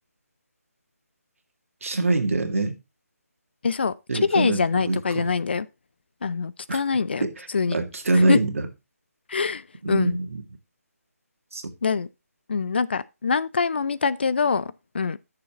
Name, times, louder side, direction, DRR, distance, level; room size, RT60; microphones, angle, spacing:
voice 1, 1.8-2.7 4.1-5.3 7.2-8.7 9.8-10.4 11.5-11.7, right 2 dB, 55° right, 2.0 m, -24 dB
voice 2, 3.6-5.7 6.2-7.3 7.5-7.8 8.1-8.4 9.3-10.2 11.8-12.1 12.5-15.2, left 5 dB, 40° left, 0.5 m, -24 dB
13.0 x 6.8 x 3.1 m
figure-of-eight pair, 170°, 9 cm